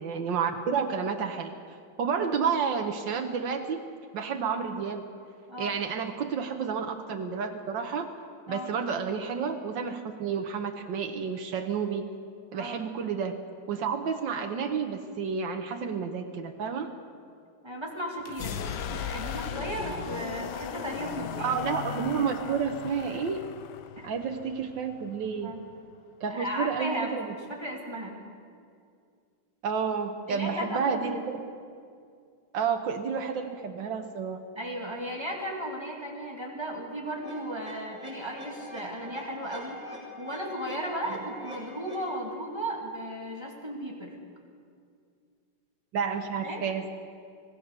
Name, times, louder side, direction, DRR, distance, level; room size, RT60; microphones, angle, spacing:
voice 1, 0.0-1.5 2.0-3.8 4.1-5.0 5.6-8.1 8.5-12.1 12.5-13.3 13.7-16.9 21.4-23.5 24.0-25.5 26.2-27.3 29.6-31.4 32.5-34.4 45.9-46.9, right 6 dB, 85° right, 4 dB, 1.8 m, -30 dB
voice 2, 17.6-21.6 24.0-24.1 25.4-25.6 26.3-28.2 30.3-31.3 34.6-44.2 46.4-46.6, right 1 dB, 15° right, -1 dB, 2.8 m, -35 dB
sound 1, 18.2-25.9, left 8 dB, 70° left, 1.4 m, -37 dB
sound 2, 37.2-42.2, left 1 dB, 50° right, 8.5 m, -44 dB
25.5 x 17.5 x 6.8 m, 2.3 s
omnidirectional pair, 1.9 m